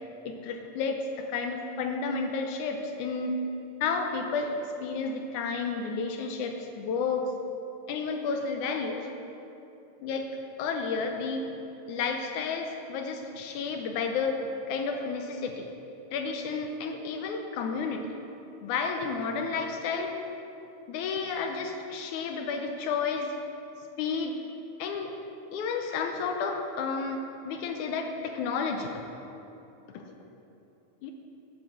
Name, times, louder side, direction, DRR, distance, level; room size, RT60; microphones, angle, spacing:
voice 1, 0.3-3.3 3.8-7.3 7.9-9.1 10.0-10.3 10.6-11.5 11.9-14.4 14.7-15.7 16.1-18.1 18.6-20.1 20.9-23.3 24.0-24.4 24.8-25.1 25.5-29.0 29.9-30.1 31.0-31.1, left 5 dB, 80° left, 4 dB, 2.0 m, -31 dB
8.1 x 7.4 x 7.1 m, 2.9 s
omnidirectional pair, 3.5 m